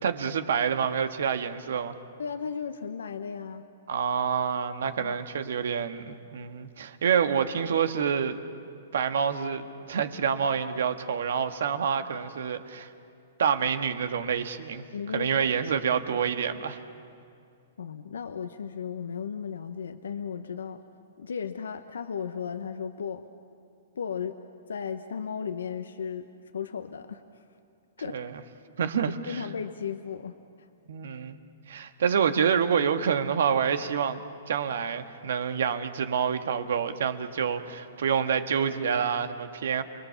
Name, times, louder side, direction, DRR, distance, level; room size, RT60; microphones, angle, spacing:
voice 1, 0.0-1.9 3.9-8.4 8.9-12.9 13.4-14.8 15.1-16.8 28.1-28.4 28.8-29.4 30.9-31.3 31.7-39.8, right 7 dB, 75° right, 8 dB, 1.5 m, -27 dB
voice 2, 2.2-3.6 5.0-5.2 14.9-15.3 17.8-20.8 21.2-23.3 23.9-24.3 24.7-26.3 26.5-27.4 28.0-28.2 29.0-30.7, left 7 dB, 90° left, 8 dB, 0.9 m, -35 dB
29.5 x 21.5 x 7.1 m, 2.4 s
hypercardioid pair, 135°, 0 cm